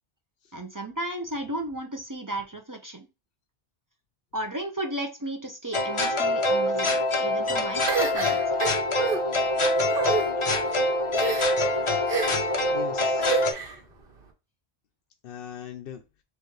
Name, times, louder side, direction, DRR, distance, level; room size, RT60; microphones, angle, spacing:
voice 1, 0.5-3.1 4.3-8.6, right 1 dB, 30° right, 3 dB, 0.4 m, -34 dB
sound 1, 5.7-13.5, left 1 dB, 35° left, 0.7 m, -25 dB
sound 2, 7.9-9.2 9.9-10.2 11.1-11.6 12.1-12.5 13.2-13.8, right 5 dB, 60° right, 1.1 m, -28 dB
voice 2, 12.2-13.4 15.2-16.0, left 9 dB, 65° left, 4 dB, 0.7 m, -41 dB
6.6 x 2.4 x 3.1 m, 0.29 s
omnidirectional pair, 1.1 m